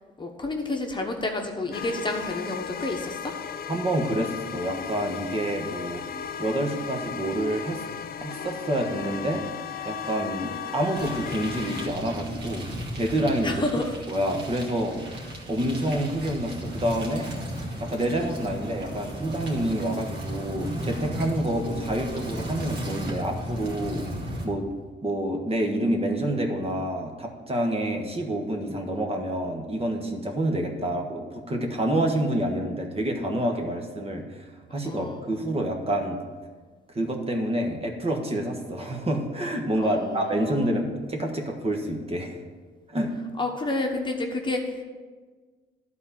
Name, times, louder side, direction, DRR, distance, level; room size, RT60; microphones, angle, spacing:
voice 1, 0.2-3.3 13.4-13.9 34.8-35.5 39.7-40.7 43.4-44.8, left 2 dB, 25° left, 2 dB, 1.1 m, -30 dB
sound 1, 1.7-11.9, left 8 dB, 50° left, 0.5 m, -36 dB
voice 2, 3.7-6.0 6.4-7.8 8.2-9.4 9.8-12.7 12.9-13.6 14.1-15.0 15.5-17.3 17.8-24.1 24.4-24.7 25.0-36.2 36.9-42.4 42.9-43.1, right 1 dB, 30° right, 2 dB, 1.4 m, -28 dB
sound 2, 10.9-24.5, equal, 55° right, 2.3 m, -35 dB
11.0 x 4.2 x 7.3 m, 1.4 s
cardioid pair, 90°, 20 cm